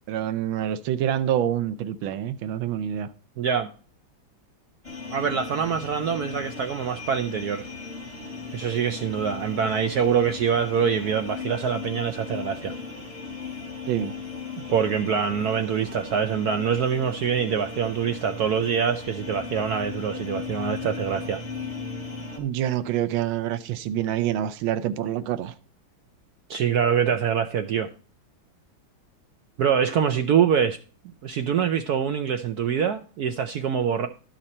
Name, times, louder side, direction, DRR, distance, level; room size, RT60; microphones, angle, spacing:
voice 1, 0.1-3.1 13.9-14.1 22.4-25.5, right 11 dB, 85° right, 1.5 m, -26 dB
voice 2, 3.4-3.7 5.1-7.7 8.5-12.8 14.6-21.4 26.5-27.9 29.6-30.8 31.2-34.1, right 7 dB, 70° right, 1.0 m, -24 dB
sound 1, 4.8-22.4, left 4 dB, 20° left, 2.9 m, -37 dB
12.0 x 5.8 x 4.2 m
omnidirectional pair, 2.2 m